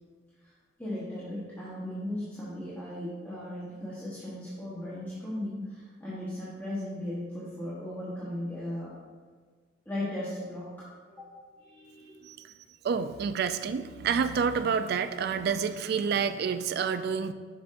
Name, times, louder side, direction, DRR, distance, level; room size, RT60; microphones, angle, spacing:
voice 1, 0.8-8.9 9.8-10.7 11.2-11.3 11.6-12.2, left 1 dB, 10° left, -10 dB, 1.1 m, -37 dB
voice 2, 12.2-12.5 12.8-17.3, right 6 dB, 60° right, 11 dB, 0.3 m, -28 dB
6.6 x 5.7 x 2.5 m, 1.5 s
head